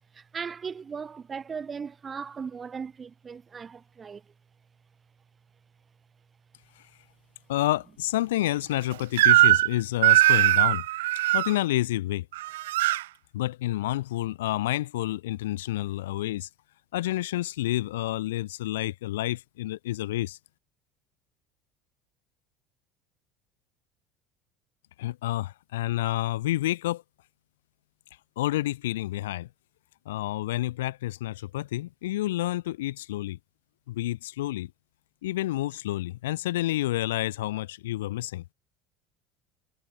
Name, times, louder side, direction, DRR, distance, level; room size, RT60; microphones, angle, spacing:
voice 1, 0.1-4.2, right 6 dB, 30° right, 1.7 m, -37 dB
voice 2, 7.5-10.8 11.3-12.3 13.3-16.5 16.9-20.4 25.0-27.0 28.4-29.5 30.0-33.4 33.9-34.7 35.2-38.4, left 15 dB, 85° left, 1.5 m, -29 dB
Crying sobbing / Screech, 9.2-9.7 10.0-11.5 12.3-13.0, right 16 dB, 85° right, 0.5 m, -20 dB
hypercardioid pair, 80°, 0 cm